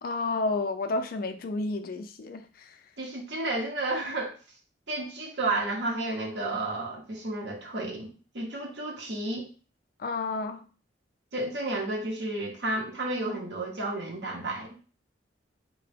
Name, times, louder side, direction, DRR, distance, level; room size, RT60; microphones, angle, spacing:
voice 1, 0.0-2.8 10.0-10.7, left 3 dB, 50° left, 0.4 m, -31 dB
voice 2, 3.0-4.3 4.9-9.5 11.3-14.7, right 2 dB, 65° right, 0.8 m, -32 dB
3.6 x 2.1 x 3.3 m
head